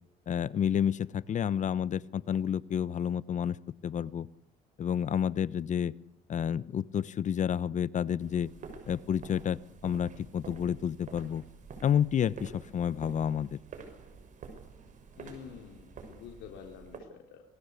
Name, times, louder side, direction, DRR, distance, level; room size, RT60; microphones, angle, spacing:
voice 1, 0.3-3.6 3.8-4.3 4.8-5.9 6.3-8.5 8.9-11.4 11.8-13.6, left 8 dB, 45° left, 19 dB, 1.0 m, -30 dB
sound 1, 8.2-17.0, right 5 dB, 50° right, 6.5 m, -49 dB
voice 2, 15.2-17.4, left 8 dB, 85° left, 2 dB, 3.9 m, -48 dB
27.0 x 19.5 x 8.5 m, 0.82 s
cardioid pair, 110°, 17 cm